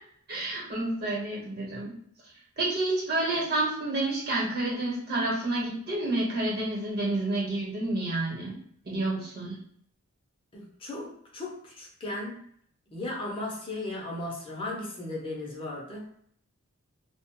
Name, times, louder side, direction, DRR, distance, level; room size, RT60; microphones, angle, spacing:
voice 1, 0.3-2.0 2.6-8.6 8.8-9.6, right 2 dB, 50° right, -3 dB, 1.0 m, -29 dB
voice 2, 10.5-12.4 12.9-16.1, left 2 dB, 25° left, -3 dB, 0.6 m, -36 dB
2.4 x 2.1 x 2.8 m, 0.64 s
head